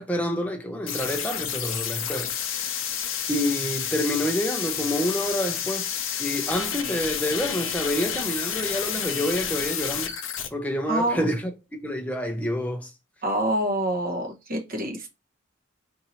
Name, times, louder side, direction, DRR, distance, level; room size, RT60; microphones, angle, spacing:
voice 1, 0.0-2.3 3.3-5.9 6.2-10.1 10.5-11.5 11.8-12.9, equal, 5° left, 0.5 m, -28 dB
sound 1, 0.9-10.5, left 8 dB, 70° left, 0.6 m, -30 dB
voice 2, 10.9-11.2 13.2-15.1, right 1 dB, 45° right, 0.9 m, -26 dB
2.7 x 2.6 x 4.2 m
head